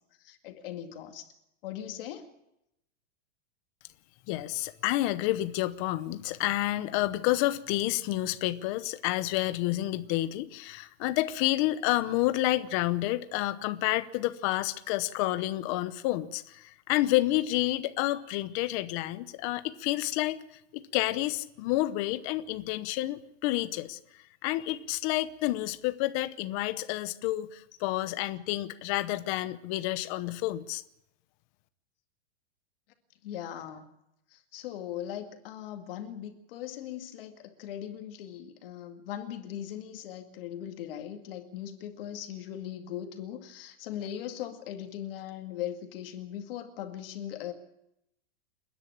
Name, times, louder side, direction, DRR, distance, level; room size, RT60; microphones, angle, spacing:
voice 1, 0.2-1.3 1.6-2.3 33.2-33.8 34.3-47.5, left 10 dB, 50° left, 5 dB, 2.2 m, -39 dB
voice 2, 4.3-20.4 20.7-24.0 24.4-30.8, left 16 dB, 30° left, 12 dB, 0.8 m, -29 dB
29.0 x 10.5 x 8.7 m, 0.82 s
supercardioid pair, 170°, 36 cm